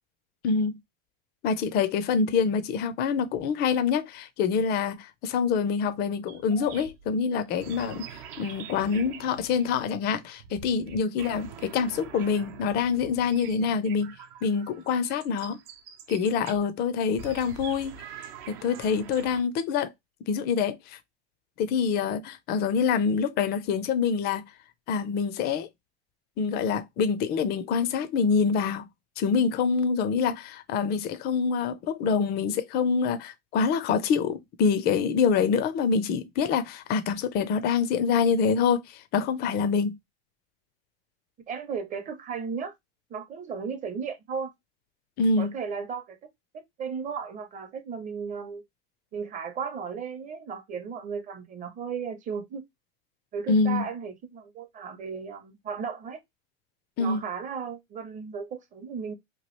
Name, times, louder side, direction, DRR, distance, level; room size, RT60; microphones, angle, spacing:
voice 1, 0.4-0.8 1.4-14.1 14.4-15.6 16.1-18.0 18.5-19.9 20.3-21.0 21.6-24.4 24.9-25.7 26.4-28.9 29.2-40.0 45.2-45.5 53.5-53.9 57.0-57.2, left 6 dB, 30° left, 0.5 m, -26 dB
sound 1, 6.3-16.7 17.2-19.4, right 8 dB, 60° right, 0.8 m, -45 dB
voice 2, 41.5-42.7 43.1-44.5 45.4-48.6 49.1-52.6 53.3-56.2 57.0-59.1, right 6 dB, 25° right, 0.7 m, -35 dB
3.0 x 2.3 x 3.0 m
supercardioid pair, 130°, 31 cm